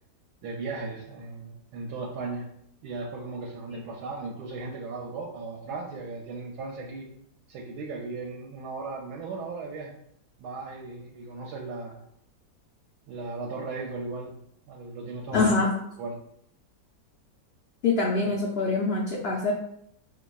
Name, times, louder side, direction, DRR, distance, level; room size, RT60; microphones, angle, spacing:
voice 1, 0.4-2.5 2.8-7.1 7.5-9.9 10.4-12.0 13.1-14.4 14.7-15.7 16.0-16.2, right 3 dB, 90° right, 0 dB, 1.1 m, -36 dB
voice 2, 15.3-15.7 17.8-19.5, left 3 dB, 80° left, -2 dB, 0.5 m, -24 dB
4.7 x 2.4 x 2.3 m, 0.72 s
omnidirectional pair, 1.7 m